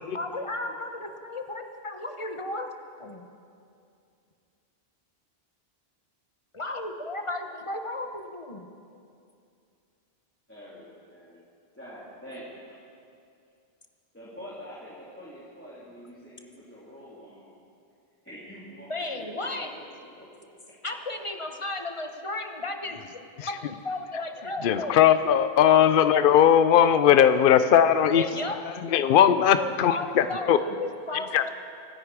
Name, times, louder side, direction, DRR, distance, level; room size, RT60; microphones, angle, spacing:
voice 1, 0.1-2.7 3.0-3.2 6.5-8.7 18.9-19.7 20.8-23.0 23.4-25.0 28.1-28.6 29.6-31.5, left 2 dB, 30° left, 5 dB, 1.1 m, -34 dB
voice 2, 10.5-11.4 11.7-12.5 14.1-17.5 18.2-20.5 21.4-21.5, equal, 10° left, -9 dB, 3.0 m, -46 dB
voice 3, 24.6-28.2 28.8-30.6 31.3-31.4, left 9 dB, 65° left, 11 dB, 0.8 m, -19 dB
25.0 x 10.5 x 4.8 m, 2.4 s
omnidirectional pair, 1.0 m